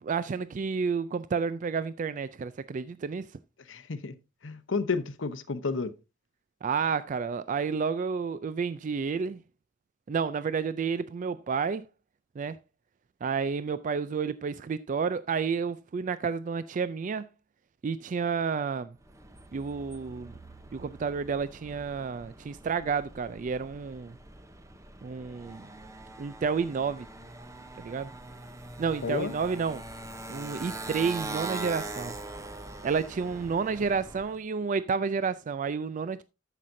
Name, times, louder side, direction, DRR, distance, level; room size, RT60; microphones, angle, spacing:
voice 1, 0.0-3.3 6.6-9.4 10.1-11.8 12.4-12.6 13.2-17.3 17.8-18.9 19.5-20.4 20.7-24.1 25.0-25.6 26.2-27.1 27.8-28.1 28.8-29.8 30.3-32.2 32.8-36.2, right 5 dB, 45° right, 0.3 m, -30 dB
voice 2, 3.7-4.1 4.4-5.9 29.0-29.3, left 4 dB, 85° left, 0.8 m, -31 dB
Motorcycle, 19.0-34.4, right 2 dB, 15° right, 0.7 m, -42 dB
14.0 x 5.8 x 2.6 m
head